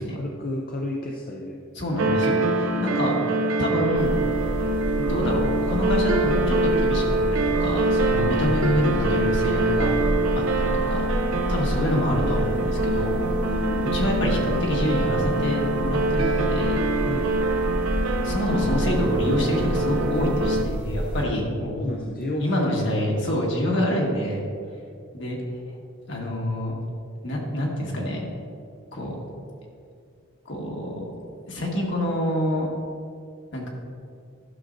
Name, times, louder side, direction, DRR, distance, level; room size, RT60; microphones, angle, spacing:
voice 1, 0.1-1.6 2.3-2.8 8.2-8.3 13.3-14.0 17.0-17.4 21.8-22.6, left 1 dB, 45° left, 0 dB, 0.5 m, -32 dB
voice 2, 1.7-3.1 3.5-4.2 5.0-9.9 10.3-11.0 11.5-13.2 13.9-16.8 18.2-21.8 22.4-24.5 25.1-25.4 26.1-26.7 27.2-28.3 28.9-29.2 30.4-31.1 31.5-32.7 33.5-33.7, equal, 65° left, -2 dB, 1.5 m, -26 dB
sound 1, 2.0-20.6, right 2 dB, 90° right, 0.6 m, -24 dB
sound 2, 3.9-21.2, equal, 10° right, 0.7 m, -30 dB
11.5 x 6.3 x 2.6 m, 2.3 s
head